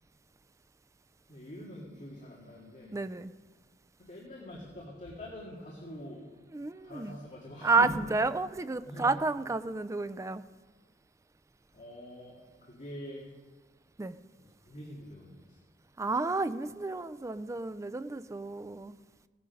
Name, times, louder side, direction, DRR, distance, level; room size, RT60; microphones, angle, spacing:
voice 1, 1.3-3.0 4.0-6.2 6.7-8.0 8.9-9.2 11.7-13.3 14.4-15.6, left 1 dB, 40° left, -4 dB, 2.1 m, -44 dB
voice 2, 2.9-3.3 6.5-7.2 7.6-10.4 14.0-14.2 16.0-19.0, right 3 dB, 15° right, 12 dB, 0.4 m, -31 dB
17.0 x 9.2 x 5.3 m, 1.4 s
head